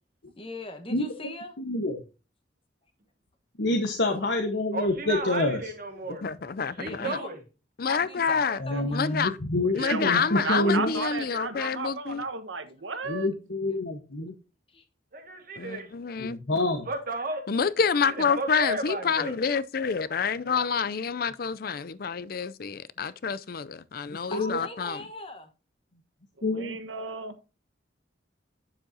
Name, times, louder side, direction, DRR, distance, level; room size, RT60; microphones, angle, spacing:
voice 1, 0.4-1.5 6.7-7.3 7.8-9.2 14.7-14.8 24.3-25.5, left 2 dB, 30° left, 1.3 m, -40 dB
voice 2, 0.9-1.3 1.6-2.0 3.6-5.6 8.6-11.0 13.1-14.3 16.2-16.9 24.1-24.6 26.4-26.8, left 2 dB, 70° left, 1.2 m, -27 dB
voice 3, 4.7-6.2 6.8-7.4 15.1-15.9 16.9-17.4 18.2-19.4, right 2 dB, 50° right, 1.9 m, -33 dB
voice 4, 6.1-7.2 7.8-8.6 8.9-9.3 9.7-12.2 15.6-16.4 17.5-25.0, left 6 dB, 50° left, 0.5 m, -28 dB
voice 5, 9.6-13.3 26.4-27.3, right 3 dB, 90° right, 1.3 m, -34 dB
9.0 x 7.5 x 2.8 m
head